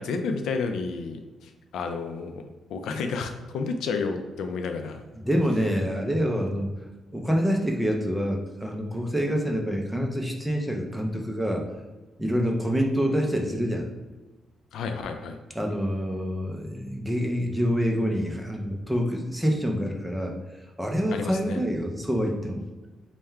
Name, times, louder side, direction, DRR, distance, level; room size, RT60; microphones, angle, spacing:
voice 1, 0.0-2.4 2.7-5.0 14.7-15.4 21.1-21.6, left 4 dB, 80° left, 6 dB, 0.4 m, -31 dB
voice 2, 5.1-6.7 7.1-11.7 12.2-13.9 15.6-20.4 20.8-22.6, equal, 5° right, 1 dB, 0.5 m, -26 dB
3.5 x 2.2 x 4.3 m, 1.2 s
cardioid pair, 140°, 0 cm